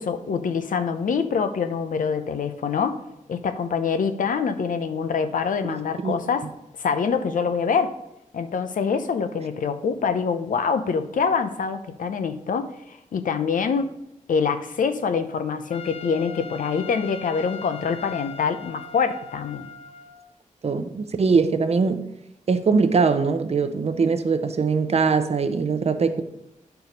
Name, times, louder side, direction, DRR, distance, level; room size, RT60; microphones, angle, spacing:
voice 1, 0.0-3.0 3.3-6.5 6.8-7.9 8.3-13.9 14.3-19.7, left 6 dB, 85° left, 9 dB, 0.7 m, -25 dB
Trumpet, 15.7-20.3, left 5 dB, 50° left, 0.6 m, -40 dB
voice 2, 20.6-22.0 22.5-26.2, right 5 dB, 50° right, 9 dB, 0.7 m, -21 dB
9.7 x 4.6 x 5.3 m, 0.83 s
wide cardioid pair, 125°, 14 cm